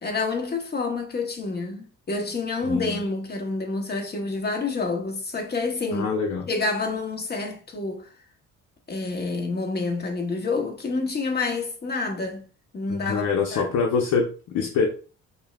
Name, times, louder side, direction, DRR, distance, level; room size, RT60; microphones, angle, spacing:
voice 1, 0.0-6.1 6.5-8.1 8.9-12.4 12.7-13.3 13.5-13.7, left 3 dB, 35° left, 0.9 m, -28 dB
voice 2, 2.7-3.0 5.9-6.4 12.9-14.9, left 5 dB, 75° left, 0.8 m, -25 dB
5.4 x 2.1 x 2.3 m
cardioid pair, 90°, 30 cm